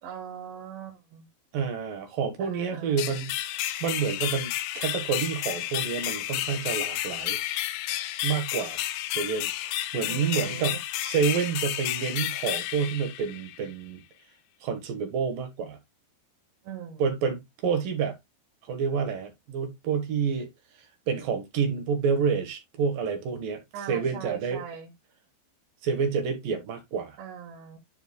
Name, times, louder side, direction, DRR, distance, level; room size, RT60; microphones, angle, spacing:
voice 1, 0.0-1.3 2.4-3.2 10.1-10.8 16.6-17.1 23.7-24.9 27.2-27.8, right 7 dB, 80° right, 3.8 m, -40 dB
voice 2, 1.5-3.3 3.8-7.4 8.2-8.9 9.1-14.0 14.6-15.8 17.0-18.2 18.7-20.5 21.1-23.6 23.9-24.6 25.8-27.2, right 6 dB, 65° right, 2.6 m, -28 dB
sound 1, 3.0-13.7, left 14 dB, 85° left, 2.8 m, -31 dB
11.5 x 4.5 x 2.3 m
omnidirectional pair, 5.1 m